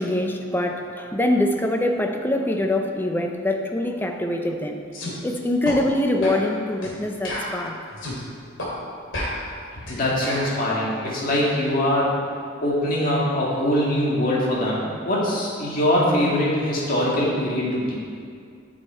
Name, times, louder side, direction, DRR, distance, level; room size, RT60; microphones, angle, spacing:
voice 1, 0.0-4.8 5.2-7.8, left 1 dB, 10° left, 3 dB, 0.7 m, -24 dB
sound 1, 4.9-5.1 5.6-5.8 6.2-6.4 6.8-7.0 7.2-8.2 8.6-8.7 9.1-10.5, left 1 dB, 75° left, 2.5 m, -30 dB
voice 2, 9.9-12.1 12.6-14.8 15.1-18.0, left 1 dB, 45° left, -5 dB, 2.3 m, -22 dB
9.9 x 6.4 x 4.5 m, 2.3 s
head